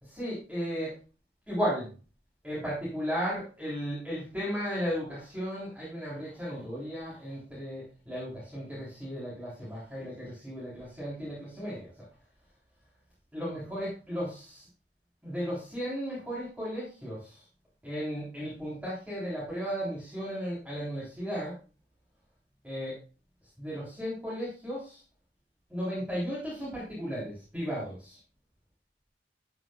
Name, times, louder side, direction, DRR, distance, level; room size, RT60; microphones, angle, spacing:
voice 1, 0.0-0.9 1.5-1.9 2.4-11.9 13.3-14.7 15.2-17.4 17.8-21.6 22.6-23.0 23.6-25.0 25.7-28.2, equal, 10° right, -8 dB, 3.6 m, -35 dB
12.0 x 5.9 x 2.3 m, 0.34 s
head